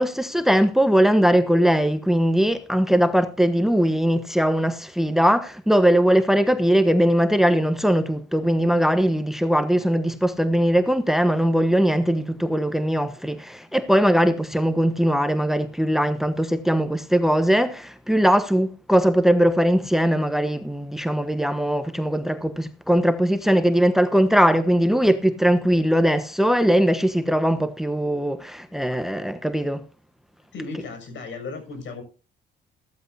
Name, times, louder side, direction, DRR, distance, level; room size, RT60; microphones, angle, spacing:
voice 1, 0.0-29.8, equal, ahead, 1.1 m, -20 dB
voice 2, 30.5-32.0, left 3 dB, 70° left, 6.8 m, -35 dB
15.0 x 13.5 x 2.7 m
cardioid pair, 90°, 20 cm